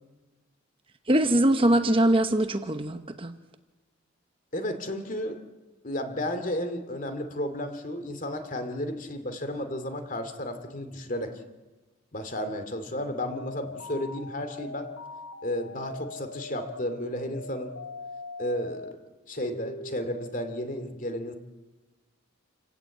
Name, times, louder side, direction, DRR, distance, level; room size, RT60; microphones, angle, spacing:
voice 1, 1.1-3.3, right 1 dB, 25° right, 8 dB, 1.0 m, -22 dB
voice 2, 4.5-5.4 5.8-11.4 12.1-14.9 15.4-17.7 18.4-19.0 19.3-21.3, left 1 dB, 40° left, 8 dB, 2.6 m, -33 dB
sound 1, 13.3-18.9 19.4-20.8, left 2 dB, 80° left, 3.3 m, -42 dB
28.5 x 17.0 x 8.6 m, 1.2 s
head